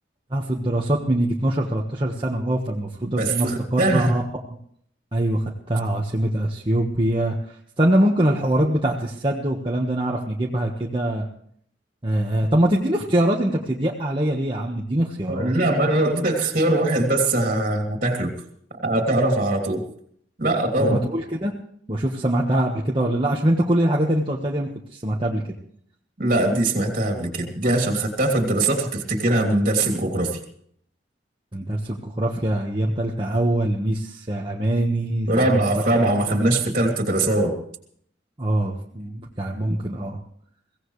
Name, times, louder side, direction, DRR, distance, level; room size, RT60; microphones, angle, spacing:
voice 1, 0.3-4.2 5.1-11.3 12.0-15.5 20.8-21.5 21.9-25.4 31.5-35.6 36.3-36.4 38.4-40.2, right 1 dB, 25° right, -2 dB, 1.4 m, -23 dB
voice 2, 3.2-4.1 15.3-18.3 18.8-19.8 20.4-21.0 26.2-30.4 35.3-37.6, right 1 dB, 45° right, 2 dB, 3.0 m, -21 dB
23.5 x 17.0 x 3.3 m, 0.66 s
head